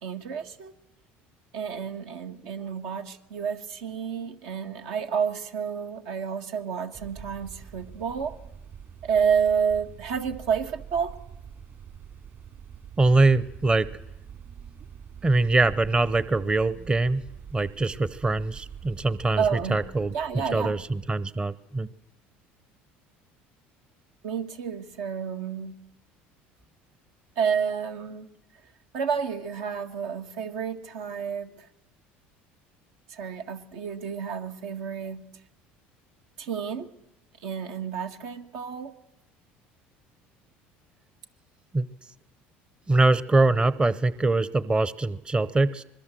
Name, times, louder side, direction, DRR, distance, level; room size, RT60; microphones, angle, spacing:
voice 1, 0.0-0.7 1.5-8.4 9.0-11.2 19.4-19.8 20.1-20.8 24.2-25.8 27.3-28.3 28.9-31.7 33.1-35.2 36.4-36.9 37.4-38.9, right 7 dB, 75° right, 1.8 m, -30 dB
sound 1, 6.9-21.2, right 7 dB, 50° right, 4.5 m, -45 dB
voice 2, 13.0-13.9 15.2-17.2 17.5-20.1 20.5-21.9 41.7-41.9 42.9-45.8, right 2 dB, 20° right, 0.8 m, -23 dB
25.5 x 21.0 x 7.6 m
supercardioid pair, 90°, 5 cm